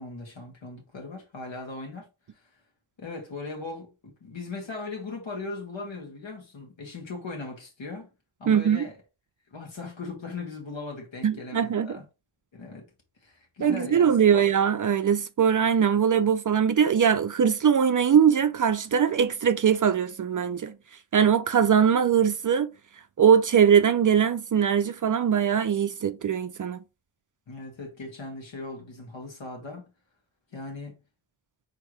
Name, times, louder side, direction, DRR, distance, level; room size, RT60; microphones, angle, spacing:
voice 1, 0.0-2.1 2.3-2.4 3.0-8.1 8.4-9.0 9.5-12.0 12.5-12.8 13.2-14.5 27.5-29.9 30.5-31.0, left 3 dB, 65° left, 2.0 m, -38 dB
voice 2, 8.5-8.8 11.2-11.9 13.6-20.8 21.1-22.7 23.2-26.8, right 8 dB, 40° right, 0.4 m, -21 dB
4.6 x 3.6 x 3.1 m
cardioid pair, 65°, 48 cm